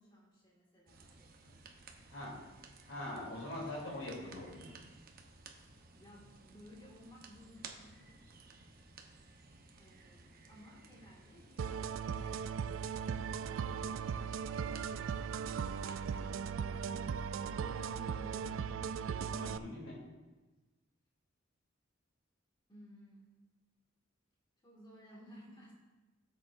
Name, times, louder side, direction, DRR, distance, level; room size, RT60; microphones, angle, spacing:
voice 1, 0.0-1.5 6.0-8.2 9.8-12.4 13.2-14.3 14.7-17.1 17.4-19.5 22.7-23.4 24.6-25.7, equal, 25° left, -4 dB, 2.0 m, -57 dB
sound 1, 0.9-16.3, right 4 dB, 50° right, 0.9 m, -57 dB
voice 2, 2.8-4.8 19.1-20.0, left 1 dB, 85° left, -3 dB, 3.1 m, -43 dB
sound 2, 11.6-19.6, right 6 dB, 75° right, 0.3 m, -38 dB
14.0 x 7.7 x 2.6 m, 1.2 s
head